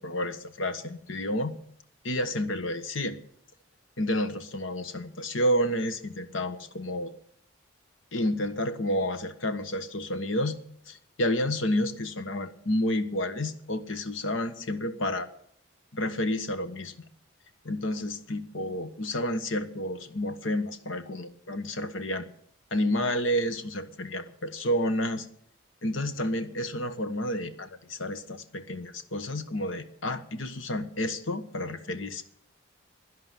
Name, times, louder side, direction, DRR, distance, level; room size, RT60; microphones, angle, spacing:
voice 1, 0.0-1.5 2.0-3.2 4.0-7.1 8.1-10.6 10.9-15.3 15.9-16.9 17.6-22.3 22.7-25.3 25.8-32.2, left 1 dB, 80° left, 10 dB, 1.2 m, -30 dB
11.0 x 11.0 x 7.5 m, 0.64 s
head